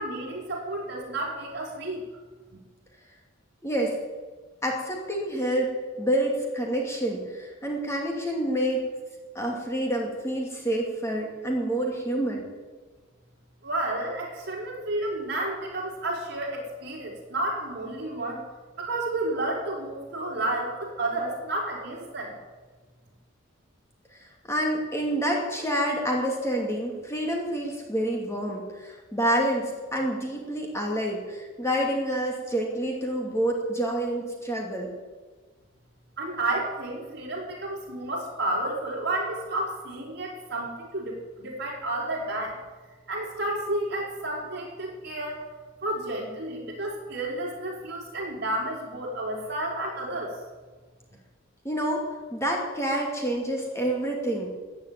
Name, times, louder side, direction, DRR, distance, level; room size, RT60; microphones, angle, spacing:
voice 1, 0.0-2.0 13.6-18.4 18.8-22.4 36.2-42.6 43.1-45.4 45.8-50.3, right 1 dB, 50° right, -2 dB, 4.7 m, -31 dB
voice 2, 3.6-4.0 4.6-8.9 9.3-12.5 24.1-34.9 51.6-54.6, right 1 dB, 15° left, -1 dB, 2.5 m, -28 dB
15.0 x 9.5 x 8.9 m, 1.3 s
head